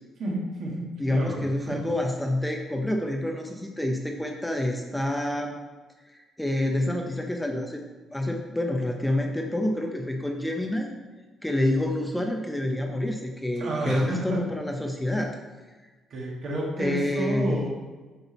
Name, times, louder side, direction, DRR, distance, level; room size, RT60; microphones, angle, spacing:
voice 1, 0.2-1.8 13.6-14.4 16.1-17.7, right 1 dB, 55° right, -2 dB, 1.9 m, -30 dB
voice 2, 1.0-5.6 6.1-7.8 8.1-10.9 11.4-15.4 15.8-15.9 16.8-17.6, left 1 dB, 5° left, 2 dB, 0.6 m, -28 dB
8.0 x 5.4 x 4.1 m, 1.3 s
cardioid pair, 140°, 0 cm